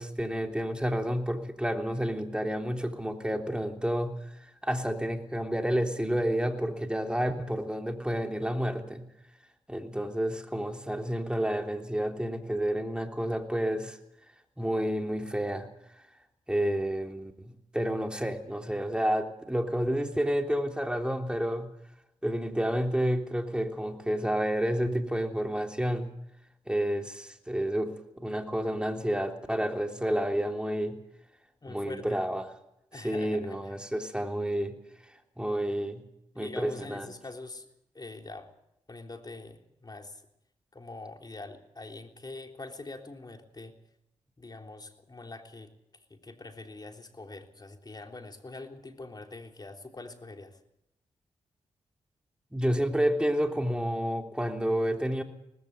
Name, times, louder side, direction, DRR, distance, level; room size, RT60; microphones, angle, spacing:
voice 1, 0.0-9.1 9.7-14.0 14.6-15.7 16.5-21.7 22.2-26.1 26.7-31.0 31.7-32.5 32.9-34.8 35.4-36.0 36.4-37.1 52.5-55.2, equal, 10° right, 4 dB, 3.5 m, -30 dB
voice 2, 31.6-32.0 32.9-33.8 36.3-37.7 37.9-38.5 38.9-40.2 40.7-43.7 44.4-45.7 46.1-50.6, left 2 dB, 35° left, 4 dB, 3.5 m, -44 dB
19.0 x 15.5 x 9.4 m, 0.80 s
supercardioid pair, 45°, 12 cm